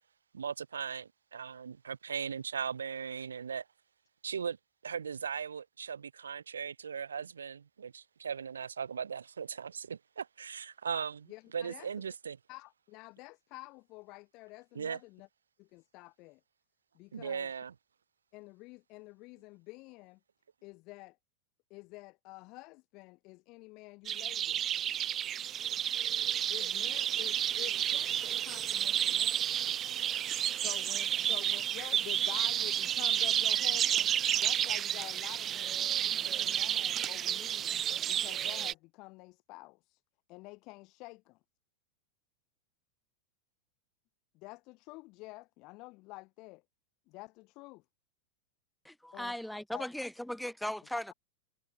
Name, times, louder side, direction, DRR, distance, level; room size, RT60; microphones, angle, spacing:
voice 1, 0.3-3.6 4.2-4.6 4.8-12.4 14.7-15.0 17.1-17.7, right 7 dB, 70° right, 2.1 m, -38 dB
voice 2, 11.3-11.9 12.5-15.3 15.6-16.4 16.9-17.5 18.3-20.2 20.6-21.2 21.7-24.6 26.5-29.7 30.5-34.1 34.4-37.8 38.1-40.0 40.3-41.4 44.3-46.6 47.1-47.8 49.1-49.8, left 24 dB, 40° left, 6.0 m, -49 dB
sound 1, 24.1-38.7, right 10 dB, 30° right, 1.3 m, -31 dB
voice 3, 48.8-51.1, left 1 dB, ahead, 4.0 m, -38 dB
figure-of-eight pair, 90°, 0 cm